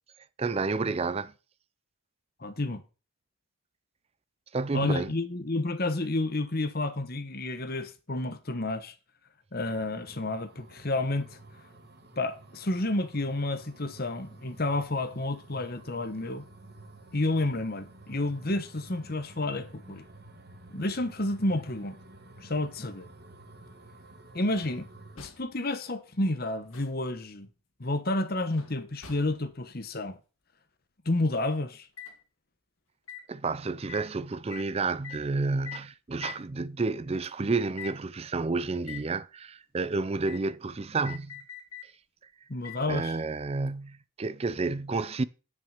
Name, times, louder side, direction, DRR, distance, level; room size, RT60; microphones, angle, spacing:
voice 1, 0.4-1.3 4.5-5.1 33.3-41.4 42.9-45.2, right 3 dB, 30° right, 0.4 m, -30 dB
voice 2, 2.4-2.8 4.7-8.9 9.5-11.4 12.2-16.5 17.1-20.0 20.7-22.0 22.4-23.1 24.3-24.9 25.2-27.5 27.8-30.2 31.0-31.9 42.5-43.2, left 2 dB, 45° left, 1.1 m, -30 dB
sound 1, 9.6-25.2, right 2 dB, 50° right, 1.5 m, -51 dB
sound 2, 24.6-24.9 25.2-25.6 26.5-27.1 28.6-29.5 32.0-32.2 33.1-33.3 33.9-34.1 34.5-34.7 35.0-35.2 35.6-35.9 36.2-36.4 37.2-37.3 37.8-38.0 38.8-39.1 40.3-40.5 41.0-41.9 42.6-42.9 43.7-43.8, left 8 dB, 90° left, 2.5 m, -44 dB
10.0 x 6.2 x 6.4 m
head